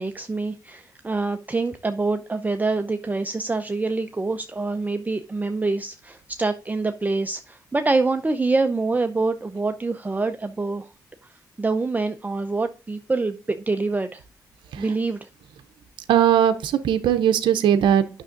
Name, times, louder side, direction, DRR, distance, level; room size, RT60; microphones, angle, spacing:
voice 1, 0.0-10.9 11.6-14.2 14.8-15.2, right 3 dB, 20° right, 8 dB, 0.6 m, -25 dB
voice 2, 16.1-18.0, right 9 dB, 85° right, 8 dB, 0.6 m, -19 dB
9.6 x 6.2 x 2.6 m, 0.34 s
cardioid pair, 60°, 8 cm